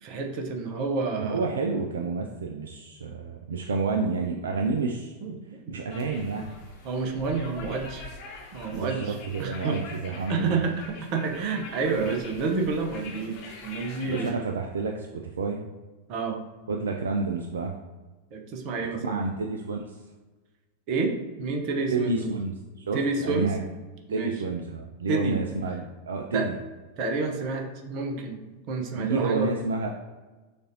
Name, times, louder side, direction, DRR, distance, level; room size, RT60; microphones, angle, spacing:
voice 1, 0.0-1.5 5.2-5.3 5.7-5.8 6.8-8.1 8.5-9.8 10.3-14.4 16.1-16.4 18.3-19.3 20.9-21.1 21.4-22.3 22.9-23.5 24.1-24.3 25.1-25.4 26.3-26.5 27.0-29.5, right 4 dB, 40° right, 3 dB, 0.8 m, -29 dB
voice 2, 1.2-5.1 5.7-6.5 8.7-10.6 14.1-15.6 16.7-17.8 19.0-20.0 21.9-23.6 24.1-26.5 28.9-29.9, right 4 dB, 65° right, 2 dB, 0.3 m, -29 dB
sound 1, 5.9-14.3, left 3 dB, 45° left, 1.0 m, -44 dB
6.5 x 2.5 x 2.7 m, 1.2 s
figure-of-eight pair, 90°, 0 cm